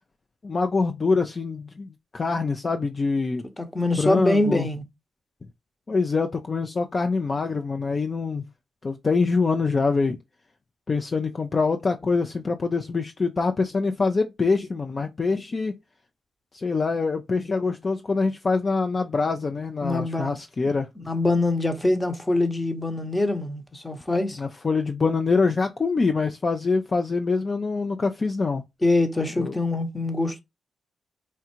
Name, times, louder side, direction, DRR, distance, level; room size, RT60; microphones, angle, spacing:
voice 1, 0.4-3.4 4.0-4.7 5.9-8.4 8.8-10.2 10.9-15.7 16.5-20.9 24.4-28.6 29.4-29.6, left 4 dB, 40° left, 0.4 m, -24 dB
voice 2, 3.6-4.8 19.8-20.3 20.6-24.4 28.8-30.4, left 2 dB, 20° left, 0.9 m, -24 dB
4.4 x 2.4 x 2.8 m
cardioid pair, 60°, 0 cm